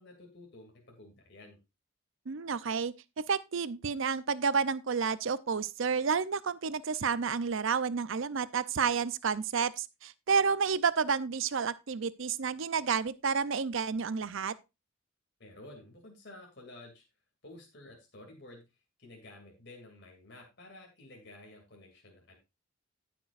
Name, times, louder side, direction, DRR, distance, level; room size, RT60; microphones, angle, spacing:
voice 1, 0.0-1.6 15.4-17.0 17.4-18.6 19.0-22.3, left 2 dB, 55° left, 2.6 m, -52 dB
voice 2, 2.3-2.9 3.3-14.5, right 6 dB, 65° right, 0.6 m, -30 dB
16.5 x 6.1 x 2.5 m
head